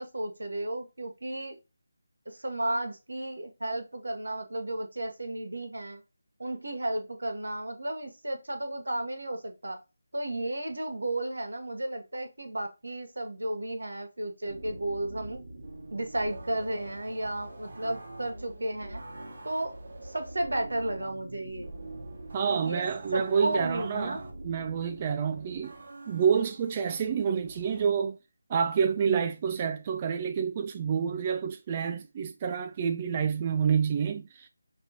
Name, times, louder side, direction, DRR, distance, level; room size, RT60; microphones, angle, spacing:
voice 1, 0.0-1.6 2.3-6.0 6.4-9.8 10.1-15.4 15.9-19.0 19.4-19.8 20.0-21.7 22.3-22.9 23.1-24.2, right 1 dB, 75° right, 1.5 m, -33 dB
sound 1, 14.5-27.8, right 2 dB, 55° right, 1.5 m, -44 dB
voice 2, 22.3-25.8 26.1-28.2 28.5-34.5, right 7 dB, 25° right, 0.4 m, -28 dB
5.9 x 3.0 x 2.9 m
figure-of-eight pair, 160°, 0 cm